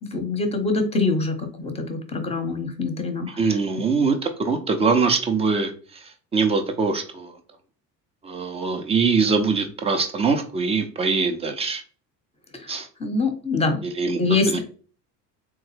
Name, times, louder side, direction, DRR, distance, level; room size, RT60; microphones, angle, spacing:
voice 1, 0.0-3.8 12.6-12.7 13.0-13.8 14.2-14.6, left 3 dB, 15° left, 5 dB, 0.7 m, -25 dB
voice 2, 3.4-5.7 6.3-7.3 8.2-11.8 12.7-12.9 13.8-14.2 14.5-14.6, right 4 dB, 15° right, 6 dB, 0.3 m, -22 dB
3.8 x 2.2 x 3.1 m, 0.41 s
figure-of-eight pair, 60°, 47 cm